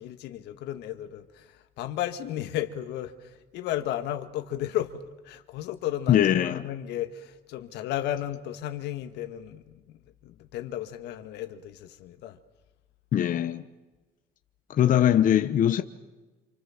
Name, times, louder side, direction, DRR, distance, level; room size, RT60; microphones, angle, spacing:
voice 1, 0.0-12.4, left 12 dB, 85° left, 1.9 m, -34 dB
voice 2, 6.1-6.6 13.1-13.6 14.7-15.8, left 10 dB, 55° left, 1.1 m, -21 dB
28.0 x 25.0 x 7.4 m
cardioid pair, 110°, 17 cm